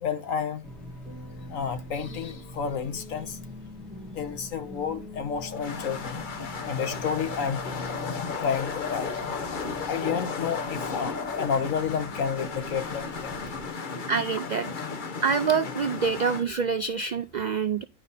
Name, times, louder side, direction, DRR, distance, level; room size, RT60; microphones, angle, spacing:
voice 1, 0.0-0.7 1.5-3.4 4.1-6.2 6.7-7.6 8.4-9.1 9.9-13.3, left 7 dB, 80° left, 1.4 m, -30 dB
sound 1, 0.6-13.7, left 1 dB, ahead, 1.6 m, -43 dB
sound 2, 5.4-16.4, left 5 dB, 40° left, 1.0 m, -34 dB
voice 2, 14.1-14.7 15.2-17.8, right 5 dB, 80° right, 0.4 m, -26 dB
10.5 x 5.1 x 4.1 m
omnidirectional pair, 1.4 m